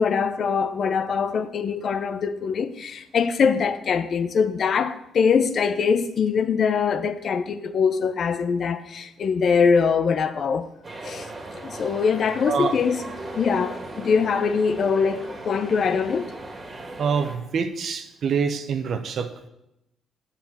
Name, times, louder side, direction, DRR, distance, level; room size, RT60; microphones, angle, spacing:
voice 1, 0.0-10.7 11.0-11.3 11.6-13.0 13.3-16.3, left 6 dB, 55° left, 0.7 m, -23 dB
sound 1, 10.8-17.4, right 2 dB, 35° right, 2.0 m, -38 dB
voice 2, 17.0-19.5, right 6 dB, 60° right, 0.9 m, -26 dB
7.5 x 5.7 x 7.1 m
cardioid pair, 90°, 0 cm